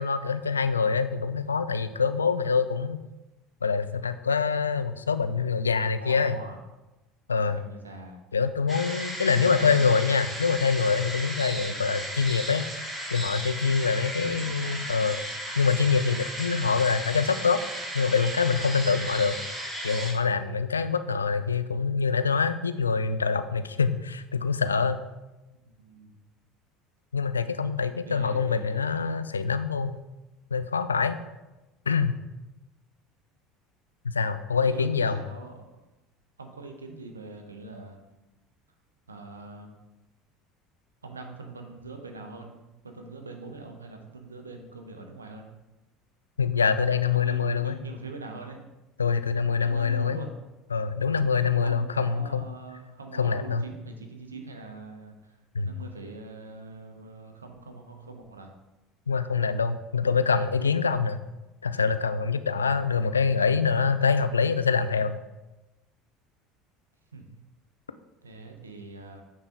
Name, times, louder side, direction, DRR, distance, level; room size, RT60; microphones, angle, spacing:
voice 1, 0.0-3.0 3.6-6.4 7.3-7.6 8.3-12.6 13.1-15.2 15.6-17.6 17.9-19.4 19.8-25.0 27.1-29.9 30.5-31.2 31.9-32.1 34.0-35.2 46.4-47.8 49.0-50.2 50.7-52.5 53.2-53.7 55.5-55.7 59.1-61.2 61.6-65.2, left 5 dB, 85° left, 11 dB, 0.3 m, -25 dB
voice 2, 5.8-6.6 7.3-8.2 9.3-9.9 11.5-11.8 14.2-14.8 25.8-26.2 28.1-29.0 34.6-35.6 36.4-38.0 39.1-39.8 41.0-42.6 42.8-45.5 47.1-48.6 49.6-50.3 51.6-55.4 55.6-58.5 67.1-67.2 68.2-69.2, right 3 dB, 85° right, 4 dB, 0.8 m, -43 dB
sound 1, 8.7-20.1, equal, 10° right, 2.4 m, -35 dB
8.9 x 3.8 x 3.9 m, 1.0 s
figure-of-eight pair, 65°, 0 cm